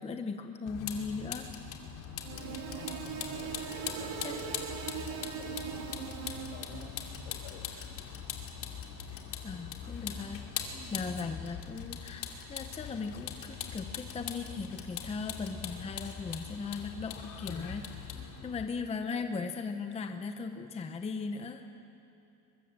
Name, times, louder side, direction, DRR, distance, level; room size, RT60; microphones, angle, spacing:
voice 1, 0.0-1.5 4.2-4.4 9.1-10.6 10.9-18.1 18.4-21.6, left 4 dB, 15° left, 6 dB, 0.8 m, -38 dB
Vehicle, 0.7-18.6, left 8 dB, 45° left, 2.4 m, -41 dB
sound 1, 2.2-7.0, right 8 dB, 65° right, 2.4 m, -40 dB
voice 2, 2.3-4.7 5.0-7.7 10.7-11.1 18.0-18.5, left 4 dB, 75° left, 2 dB, 5.4 m, -50 dB
23.0 x 22.5 x 7.5 m, 2.7 s
cardioid pair, 170°, 43 cm